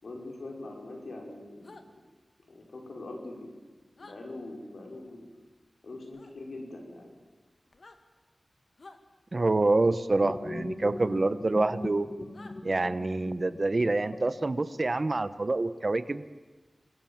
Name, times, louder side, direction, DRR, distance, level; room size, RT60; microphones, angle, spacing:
voice 1, 0.0-1.8 2.5-3.5 3.9-5.3 5.8-7.1, left 2 dB, 80° left, 1 dB, 5.6 m, -42 dB
sound 1, 1.6-1.9 4.0-4.2 6.1-6.3 7.7-8.0 8.8-9.0 11.1-11.2 12.3-12.6, left 3 dB, 65° left, 2.1 m, -51 dB
voice 2, 9.3-12.1 12.6-16.2, right 2 dB, 45° right, 14 dB, 1.0 m, -27 dB
sound 2, 10.2-15.0, left 2 dB, 40° left, 1.4 m, -40 dB
28.0 x 21.0 x 7.3 m, 1.3 s
wide cardioid pair, 70°, 0 cm